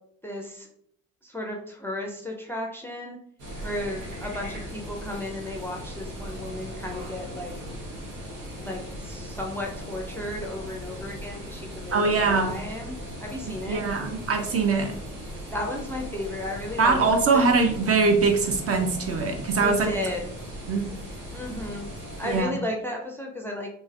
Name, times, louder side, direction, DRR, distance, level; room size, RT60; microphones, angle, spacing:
voice 1, 0.2-0.7 1.2-3.2 3.6-7.5 8.6-13.0 13.2-13.9 15.5-17.0 17.3-17.4 19.6-20.3 21.3-21.9 22.2-23.7, left 1 dB, 5° left, 1 dB, 0.4 m, -34 dB
sound 1, 3.4-22.4, equal, 85° right, 0.9 m, -38 dB
voice 2, 11.9-12.5 13.7-14.9 16.8-19.9 20.7-20.9 22.2-22.5, right 4 dB, 35° right, 4 dB, 0.6 m, -22 dB
3.1 x 2.6 x 2.4 m, 0.70 s
hypercardioid pair, 45°, 40 cm